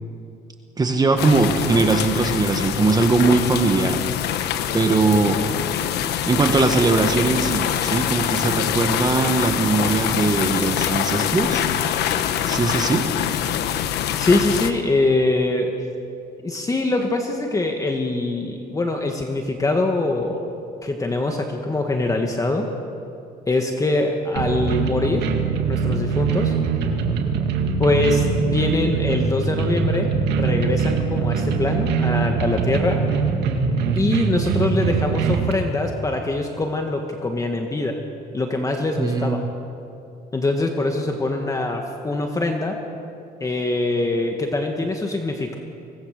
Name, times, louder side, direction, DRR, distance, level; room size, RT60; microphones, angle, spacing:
voice 1, 0.8-4.0 4.7-5.4 6.3-11.6 12.4-13.1 39.0-39.5, right 3 dB, 25° right, 5 dB, 1.6 m, -20 dB
sound 1, 1.2-14.7, left 10 dB, 75° left, 1.2 m, -24 dB
voice 2, 14.2-15.7 16.4-20.5 20.8-22.7 23.5-25.3 25.7-26.5 27.8-30.1 30.4-33.0 34.0-38.0 38.3-39.4 40.3-42.8 43.4-45.6, left 2 dB, 20° left, 3 dB, 1.8 m, -23 dB
sound 2, 24.4-35.5, right 5 dB, 80° right, 2.1 m, -22 dB
24.5 x 18.5 x 6.7 m, 2.6 s
cardioid pair, 110°, 17 cm